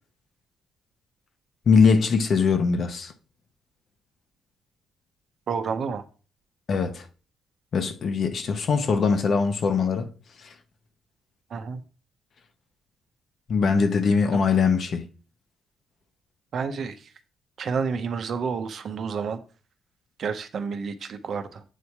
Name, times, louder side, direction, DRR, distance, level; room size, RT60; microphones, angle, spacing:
voice 1, 1.7-3.1 6.7-7.0 7.7-10.1 13.5-15.1, left 5 dB, 55° left, 0.8 m, -21 dB
voice 2, 5.5-6.1 11.5-11.8 14.3-14.4 16.5-17.1 17.6-19.4 20.2-21.6, right 5 dB, 60° right, 0.7 m, -30 dB
8.2 x 2.8 x 4.7 m
cardioid pair, 90°, 0 cm